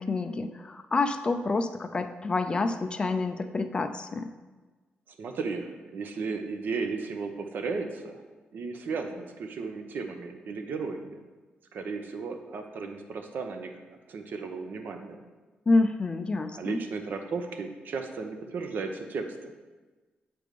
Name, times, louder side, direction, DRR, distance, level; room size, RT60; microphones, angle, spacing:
voice 1, 0.0-4.3 15.7-16.8, left 3 dB, 25° left, 8 dB, 0.3 m, -28 dB
voice 2, 5.2-8.2 8.5-11.2 11.7-13.7 14.1-15.2 16.5-19.5, right 4 dB, 60° right, 5 dB, 0.7 m, -35 dB
7.6 x 3.4 x 5.0 m, 1.3 s
wide cardioid pair, 145°, 4 cm